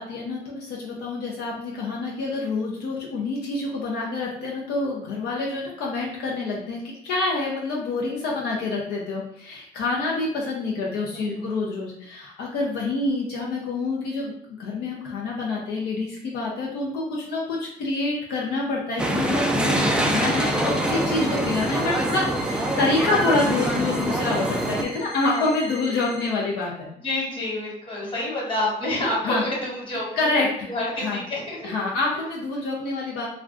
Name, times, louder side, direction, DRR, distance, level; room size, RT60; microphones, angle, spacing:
voice 1, 0.0-14.3 14.6-26.9 29.2-29.4 30.1-30.7 31.0-31.2 31.6-33.3, left 3 dB, 75° left, -3 dB, 0.6 m, -27 dB
voice 2, 11.1-11.5 25.2-25.5 27.0-31.7 32.1-32.2, left 1 dB, 30° left, -4 dB, 1.3 m, -28 dB
sound 1, 19.0-24.8, right 1 dB, 5° right, 0.3 m, -24 dB
sound 2, 20.0-26.3, right 1 dB, 70° right, 0.5 m, -40 dB
2.4 x 2.2 x 3.7 m, 0.76 s
cardioid pair, 110°, 17 cm